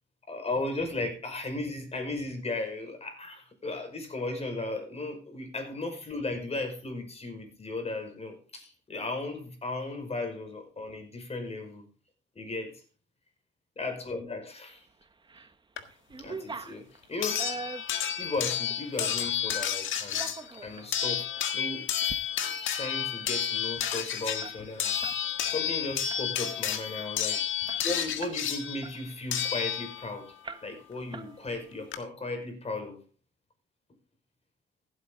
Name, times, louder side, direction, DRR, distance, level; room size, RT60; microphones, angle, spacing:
voice 1, 0.3-11.8 12.4-12.8 13.8-14.9 16.2-17.5 18.2-20.3 20.6-21.3 21.5-21.9 22.7-25.2 25.5-27.4 27.8-30.3 30.6-33.0, left 2 dB, 30° left, 5 dB, 5.3 m, -36 dB
sound 1, 15.0-15.5 15.9-19.5 20.0-20.9 21.4-21.5 21.9-22.2 22.5-22.6 22.9-25.2 25.5-25.7 26.1-26.5 27.0-27.1 27.3-28.5 28.8-30.0 30.4-30.9 31.1-31.8, right 3 dB, 25° right, 1.1 m, -43 dB
sound 2, 15.8-15.9 17.2-30.2 31.5-31.6 31.9-32.0, left 9 dB, 80° left, 1.7 m, -31 dB
15.5 x 8.7 x 3.9 m, 0.37 s
cardioid pair, 90°, 20 cm